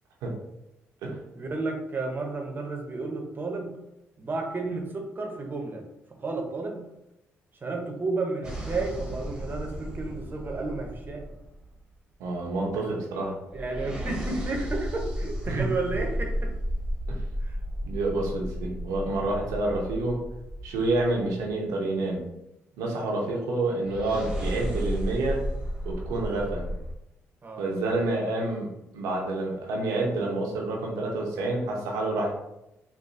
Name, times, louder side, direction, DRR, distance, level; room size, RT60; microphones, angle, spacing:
voice 1, 1.3-3.8 4.2-5.8 6.2-6.9 7.6-11.3 13.5-16.5 17.4-17.5 27.4-27.6, right 3 dB, 40° right, 2 dB, 0.9 m, -32 dB
sound 1, 8.4-11.9 13.5-21.5 23.8-26.9, equal, 10° right, 1.1 m, -33 dB
voice 2, 12.2-13.4 15.5-15.7 17.1-17.2 17.8-20.2 20.6-22.3 22.8-25.4 25.8-26.6 27.6-28.7 28.9-32.3, right 2 dB, 85° right, -1 dB, 0.8 m, -28 dB
4.1 x 2.6 x 2.6 m, 0.89 s
supercardioid pair, 60°, 5 cm